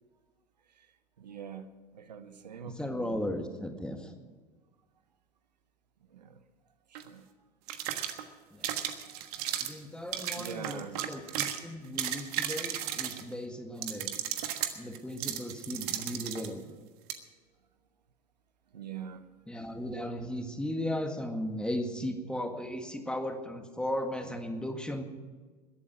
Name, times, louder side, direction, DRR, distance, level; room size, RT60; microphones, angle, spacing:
voice 1, 1.2-3.1 6.1-6.3 6.9-7.2 10.4-11.0 18.7-19.2, right 7 dB, 90° right, 11 dB, 1.0 m, -43 dB
voice 2, 2.7-4.1 8.5-8.7 9.6-14.2 14.8-16.8 19.5-25.0, left 1 dB, 5° left, 4 dB, 1.9 m, -36 dB
sound 1, 6.9-7.1 7.7-8.2 8.6-9.8 10.1-11.6 11.8-13.3 13.8-16.5 17.1-17.2, right 11 dB, 65° right, 1.4 m, -34 dB
21.0 x 8.5 x 6.1 m, 1.4 s
hypercardioid pair, 90°, 21 cm